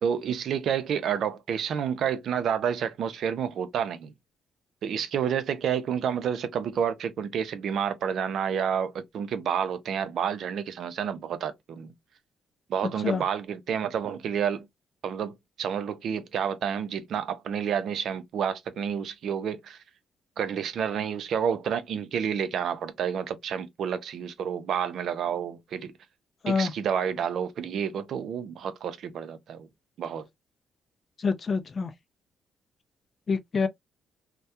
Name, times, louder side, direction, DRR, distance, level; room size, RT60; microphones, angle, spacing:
voice 1, 0.0-4.1 4.8-11.9 12.7-14.7 15.0-19.8 20.4-25.9 26.5-29.7 30.0-30.2, right 8 dB, 70° right, 0.5 m, -29 dB
voice 2, 31.2-31.9 33.3-33.7, left 4 dB, 40° left, 0.4 m, -26 dB
2.2 x 2.1 x 2.7 m
cardioid pair, 90°, 0 cm